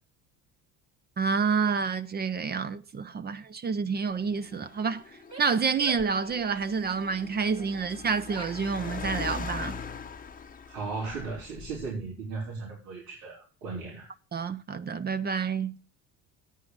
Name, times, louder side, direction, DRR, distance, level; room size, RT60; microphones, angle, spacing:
voice 1, 1.2-5.0 5.4-9.8 14.3-15.8, right 5 dB, 30° right, 0.7 m, -28 dB
Car, 4.1-12.1, left 5 dB, 25° left, 0.9 m, -41 dB
Female speech woman speaking / Yell, 5.1-6.8 7.4-8.7 8.9-9.9, right 3 dB, 50° right, 3.6 m, -47 dB
voice 2, 10.7-14.1, right 4 dB, 85° right, 4.3 m, -36 dB
8.7 x 5.7 x 7.8 m
cardioid pair, 100°, 34 cm